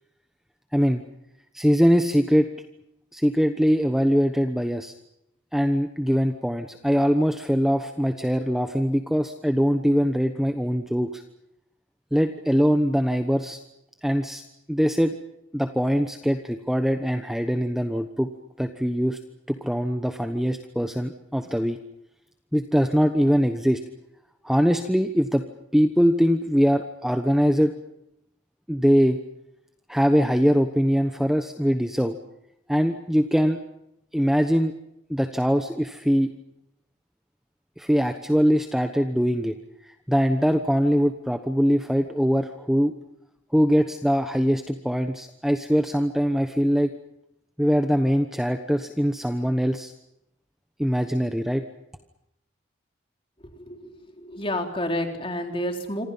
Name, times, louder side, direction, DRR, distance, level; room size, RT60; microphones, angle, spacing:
voice 1, 0.7-1.0 1.5-2.5 3.1-4.9 5.5-11.2 12.1-13.6 14.0-14.4 14.7-15.1 15.5-18.3 18.6-19.2 19.5-21.8 22.5-23.8 24.4-25.4 25.7-27.7 28.7-29.2 29.9-32.2 32.7-33.6 34.1-34.7 35.1-36.3 37.8-39.6 39.8-42.9 43.5-46.9 47.6-49.9 50.8-51.6, equal, ahead, 6 dB, 1.1 m, -22 dB
voice 2, 53.6-56.1, left 1 dB, 25° left, 3 dB, 3.7 m, -30 dB
27.0 x 26.0 x 5.6 m, 0.82 s
head